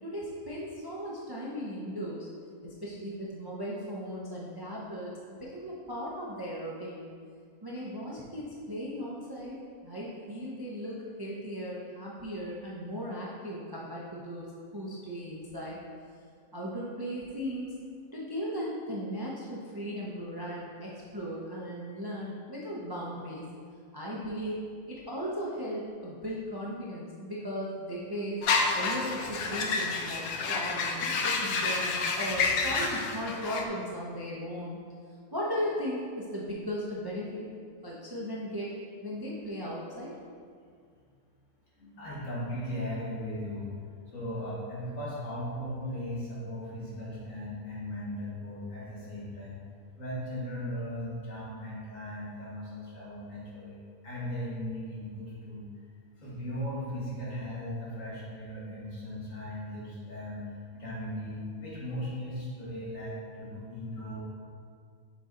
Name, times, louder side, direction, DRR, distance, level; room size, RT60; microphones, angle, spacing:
voice 1, 0.0-2.3 2.6-5.1 5.4-7.1 7.6-9.5 9.8-14.5 14.7-15.8 16.5-17.7 18.1-23.4 23.9-28.4 28.7-34.8 35.3-37.5 37.8-38.7 39.0-40.1, equal, 25° right, -5 dB, 0.5 m, -37 dB
sound 1, 28.4-33.6, left 4 dB, 80° left, 1.1 m, -29 dB
voice 2, 41.8-43.7 44.1-49.6 50.0-53.8 54.0-55.7 56.2-60.4 60.7-64.2, equal, 60° left, -8 dB, 2.1 m, -37 dB
6.9 x 4.1 x 3.8 m, 2.1 s
omnidirectional pair, 1.5 m